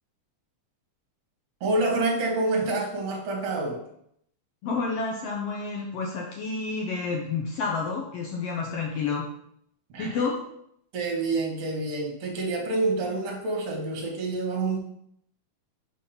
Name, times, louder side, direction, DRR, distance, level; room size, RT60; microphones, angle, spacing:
voice 1, 1.6-3.8 9.9-10.2 10.9-14.8, right 2 dB, 55° right, -1 dB, 2.3 m, -27 dB
voice 2, 4.6-9.3 10.0-10.4, left 4 dB, 80° left, -1 dB, 1.4 m, -29 dB
6.4 x 3.7 x 5.6 m, 0.72 s
omnidirectional pair, 3.8 m